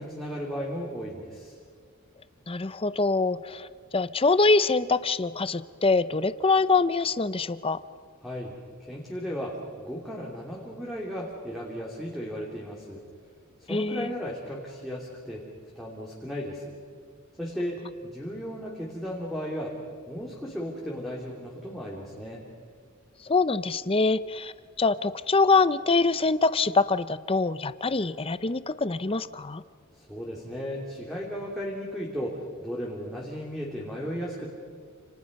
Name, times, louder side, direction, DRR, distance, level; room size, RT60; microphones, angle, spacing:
voice 1, 0.0-1.6 8.2-8.5 8.9-13.0 13.7-15.4 15.8-16.6 17.4-19.8 20.1-22.4 30.0-34.5, equal, ahead, -4 dB, 3.2 m, -35 dB
voice 2, 2.5-3.7 3.9-7.8 13.7-14.1 23.2-24.5 24.8-29.6, left 3 dB, 25° left, 14 dB, 0.7 m, -24 dB
30.0 x 28.5 x 5.4 m, 2.1 s
head